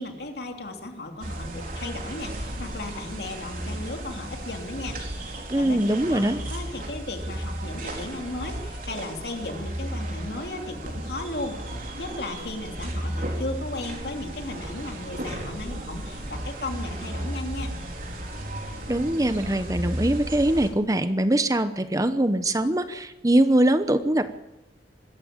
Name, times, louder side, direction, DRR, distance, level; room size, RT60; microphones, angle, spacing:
voice 1, 0.0-5.0 5.6-5.8 6.1-11.6 12.0-17.7, left 2 dB, 65° left, 4 dB, 3.1 m, -35 dB
sound 1, 1.2-20.7, right 1 dB, 50° right, 4.3 m, -34 dB
voice 2, 5.5-6.4 18.9-24.3, right 1 dB, 20° right, 11 dB, 0.9 m, -22 dB
25.0 x 14.0 x 8.7 m, 0.96 s
head